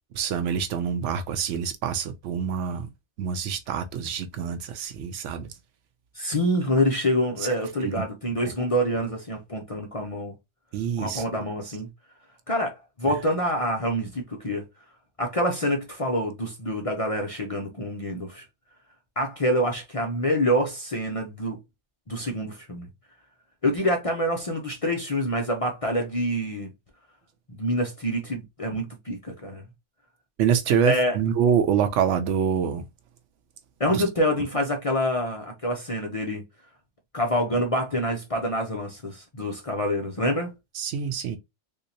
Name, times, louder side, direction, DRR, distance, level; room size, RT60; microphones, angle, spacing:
voice 1, 0.2-2.9 3.2-5.5 7.4-7.5 7.8-7.9 8.4-8.5 10.7-11.2 30.4-32.8 33.9-34.0 40.7-41.4, right 7 dB, 90° right, 0.9 m, -26 dB
voice 2, 6.1-10.3 11.0-11.9 12.5-14.6 15.2-18.5 19.2-21.6 22.1-22.9 23.6-26.7 27.5-29.6 30.9-31.2 33.8-36.4 37.1-40.5, equal, 35° left, 0.6 m, -26 dB
3.5 x 2.8 x 2.6 m
omnidirectional pair, 1.2 m